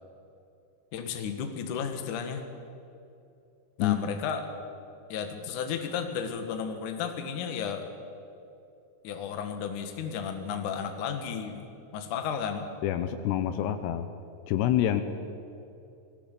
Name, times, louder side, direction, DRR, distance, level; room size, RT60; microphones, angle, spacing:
voice 1, 0.9-2.4 3.8-4.4 5.1-7.9 9.0-11.7 11.9-12.7, left 7 dB, 60° left, 6 dB, 2.7 m, -33 dB
voice 2, 12.8-14.1 14.5-15.0, left 12 dB, 80° left, 9 dB, 3.0 m, -26 dB
21.0 x 16.0 x 8.4 m, 2.7 s
omnidirectional pair, 4.8 m